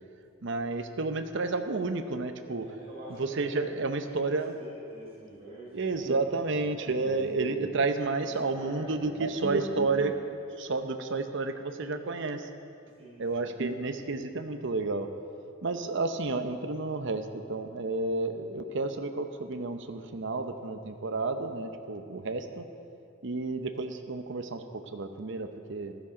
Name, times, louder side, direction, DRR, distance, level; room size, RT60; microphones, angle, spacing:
voice 1, 0.4-2.7 3.2-4.6 5.7-12.5 13.2-15.1 15.6-22.7 23.2-25.9, right 3 dB, 65° right, 8 dB, 0.8 m, -31 dB
voice 2, 2.6-7.2 8.2-10.2 12.9-13.5, right 1 dB, 30° right, -7 dB, 3.9 m, -47 dB
14.5 x 12.0 x 5.0 m, 2.6 s
head